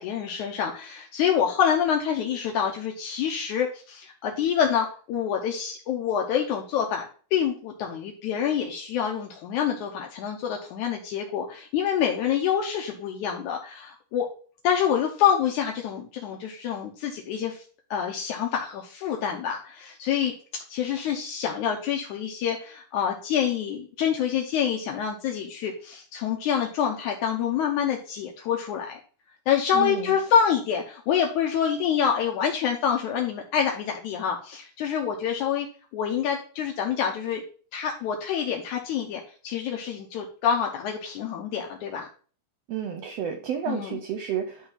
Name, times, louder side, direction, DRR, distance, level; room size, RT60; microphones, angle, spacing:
voice 1, 0.0-14.3 14.6-17.6 17.9-29.0 29.5-35.7 35.9-37.4 37.7-42.1 43.7-44.0, left 8 dB, 75° left, 1 dB, 2.3 m, -27 dB
voice 2, 29.7-30.2 42.7-44.7, right 8 dB, 75° right, 6 dB, 1.6 m, -31 dB
10.0 x 3.5 x 5.6 m, 0.41 s
omnidirectional pair, 3.6 m